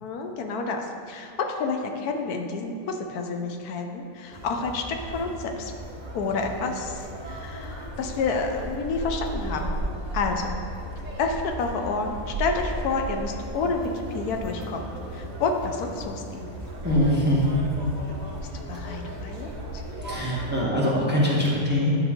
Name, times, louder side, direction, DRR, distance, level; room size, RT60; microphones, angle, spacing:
voice 1, 0.0-5.7 6.1-9.8 10.1-10.6 11.2-14.9 15.1-16.5 18.1-18.2 18.7-19.5, left 4 dB, 80° left, 4 dB, 1.2 m, -29 dB
Conversation, 4.3-20.7, right 1 dB, 35° right, 0.9 m, -35 dB
voice 2, 16.8-17.4 20.0-22.0, equal, 10° right, -5 dB, 0.9 m, -23 dB
9.4 x 5.1 x 3.7 m, 2.6 s
omnidirectional pair, 1.6 m